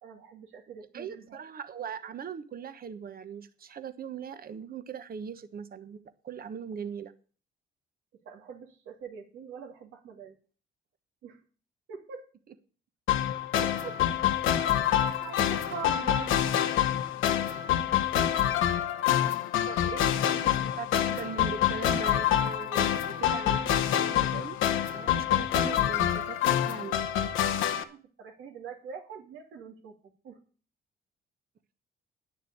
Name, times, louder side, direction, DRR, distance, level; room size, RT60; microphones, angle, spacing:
voice 1, 0.0-1.2 8.2-10.3 11.2-11.4 11.9-12.3 13.6-14.0 14.8-16.6 19.6-20.6 27.8-30.0 30.2-30.4, right 5 dB, 85° right, 2.7 m, -43 dB
voice 2, 0.9-7.1 18.5-18.7 20.6-27.1, right 7 dB, 50° right, 1.1 m, -40 dB
sound 1, 13.1-27.8, left 10 dB, 85° left, 0.9 m, -26 dB
9.9 x 6.7 x 8.5 m
cardioid pair, 90°, 20 cm